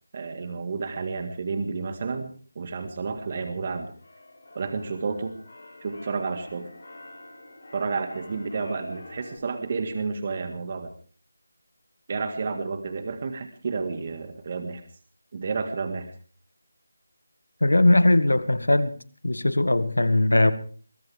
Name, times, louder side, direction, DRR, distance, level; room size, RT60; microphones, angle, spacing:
voice 1, 0.1-3.9 4.5-5.3 5.8-6.7 7.7-10.9 12.1-14.8 15.3-16.1, right 4 dB, 35° right, 1.9 m, -31 dB
Keyboard (musical), 3.5-9.4, left 2 dB, 60° left, 7.2 m, -47 dB
voice 2, 17.6-18.9 19.2-20.5, left 2 dB, 80° left, 1.7 m, -19 dB
22.5 x 17.5 x 3.5 m
figure-of-eight pair, 165°, 0 cm